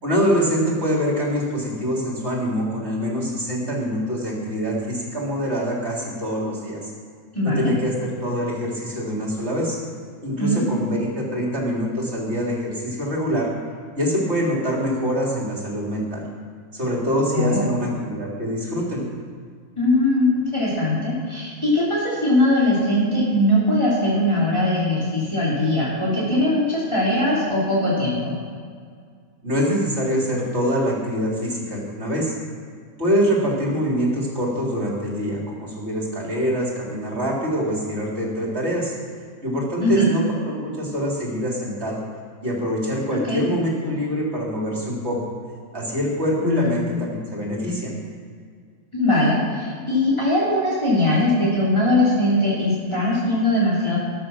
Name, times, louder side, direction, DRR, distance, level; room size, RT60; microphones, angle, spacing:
voice 1, 0.0-6.9 7.4-9.8 10.2-13.5 13.9-16.3 16.7-19.0 29.4-32.3 33.0-38.9 39.4-42.0 42.4-45.2 45.7-48.0, equal, 45° right, -3 dB, 3.8 m, -24 dB
voice 2, 7.3-7.7 10.4-10.6 17.3-17.7 19.8-28.3 39.8-40.1 43.3-43.4 46.4-46.8 48.9-54.0, left 1 dB, 20° left, -8 dB, 3.4 m, -20 dB
13.5 x 11.5 x 6.3 m, 2.1 s
omnidirectional pair, 1.6 m